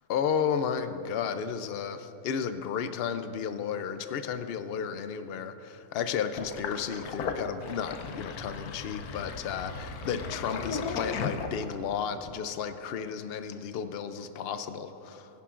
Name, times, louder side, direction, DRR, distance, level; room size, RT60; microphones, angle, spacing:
voice 1, 0.1-15.3, left 7 dB, 60° left, 9 dB, 0.6 m, -33 dB
Sink (filling or washing), 6.3-11.9, left 5 dB, 80° left, 1.3 m, -36 dB
20.5 x 11.5 x 2.5 m, 3.0 s
omnidirectional pair, 1.6 m